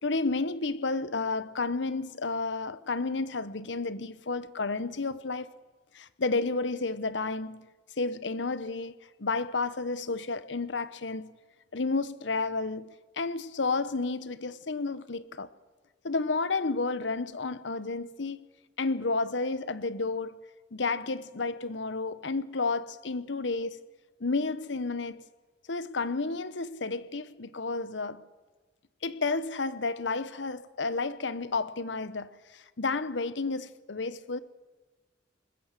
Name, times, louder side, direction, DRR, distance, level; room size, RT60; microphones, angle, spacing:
voice 1, 0.0-5.5 5.9-7.7 8.0-11.3 11.7-15.5 16.0-18.5 18.8-20.4 20.7-23.8 24.2-25.2 25.7-28.3 29.0-34.4, left 3 dB, 80° left, 1.0 m, -31 dB
21.0 x 20.5 x 7.6 m
head